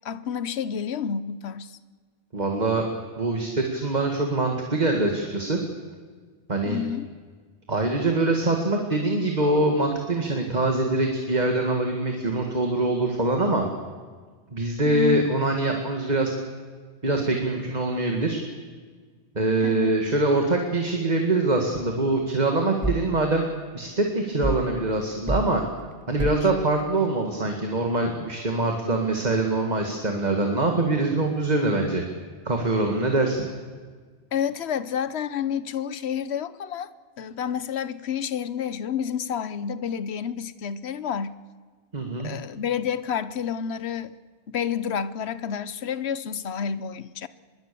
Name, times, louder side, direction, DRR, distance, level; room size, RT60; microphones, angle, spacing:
voice 1, 0.0-1.8 6.7-7.1 14.9-15.3 19.6-20.0 34.3-36.9 37.2-41.4 42.2-44.1 44.5-47.3, left 8 dB, 70° left, 1.1 m, -29 dB
voice 2, 2.3-2.9 3.2-5.6 6.5-6.8 7.7-13.7 14.5-16.3 17.0-18.4 19.4-23.5 23.7-25.6 26.1-32.0 32.5-33.5 41.9-42.3, right 2 dB, 40° right, 2.2 m, -24 dB
sound 1, 22.8-23.1 24.4-24.7 25.3-25.5 26.2-26.5, right 2 dB, 15° right, 0.3 m, -28 dB
25.0 x 21.5 x 6.9 m
omnidirectional pair, 1.2 m